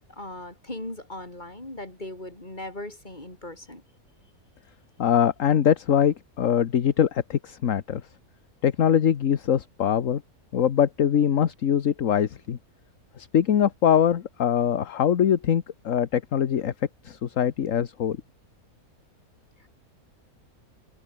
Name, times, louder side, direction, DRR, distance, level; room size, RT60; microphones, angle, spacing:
voice 1, 0.1-3.8 19.6-19.7, left 1 dB, 30° left, 5.3 m, -38 dB
voice 2, 5.0-8.0 8.6-10.2 10.5-12.6 13.2-16.7 17.0-18.2, left 9 dB, 65° left, 1.4 m, -23 dB
omnidirectional pair, 1.6 m